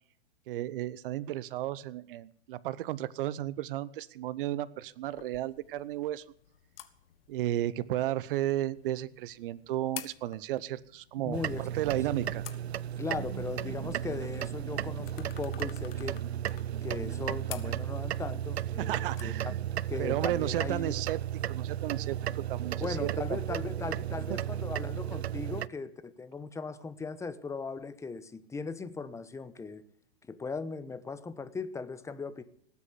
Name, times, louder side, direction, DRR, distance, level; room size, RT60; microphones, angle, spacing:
voice 1, 0.5-6.2 7.3-12.5 18.8-19.6 20.0-21.2 21.5-23.4 24.3-24.4, right 14 dB, 60° right, 17 dB, 0.9 m, -33 dB
sound 1, 5.0-22.9, left 11 dB, 65° left, 1.7 m, -52 dB
voice 2, 11.2-11.7 12.1-12.3 13.0-16.2 16.8-19.5 19.9-21.0 22.8-29.8 30.3-32.4, left 4 dB, 10° left, 13 dB, 1.0 m, -38 dB
sound 2, 11.3-25.7, right 11 dB, 85° right, 0.6 m, -34 dB
19.0 x 8.5 x 8.3 m, 0.63 s
hypercardioid pair, 125°, 31 cm